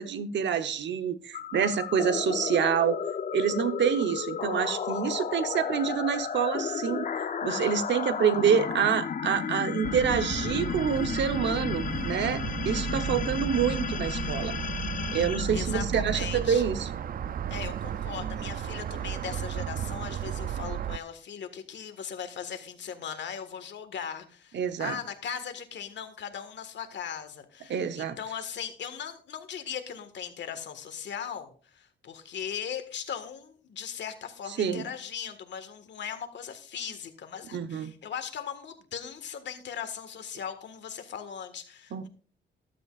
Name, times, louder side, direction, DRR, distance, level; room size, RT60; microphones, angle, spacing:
voice 1, 0.0-3.0 3.3-14.6 15.1-16.9 24.5-25.0 27.7-28.2 34.6-34.8 37.5-37.9 41.9-42.1, right 7 dB, 70° right, 1.0 m, -27 dB
sound 1, 1.3-16.5, left 7 dB, 45° left, 0.7 m, -33 dB
sound 2, 9.8-21.0, right 9 dB, 50° right, 0.4 m, -34 dB
voice 2, 15.5-16.6 17.5-42.1, left 8 dB, 70° left, 1.7 m, -38 dB
14.5 x 12.5 x 2.5 m
cardioid pair, 125°, 19 cm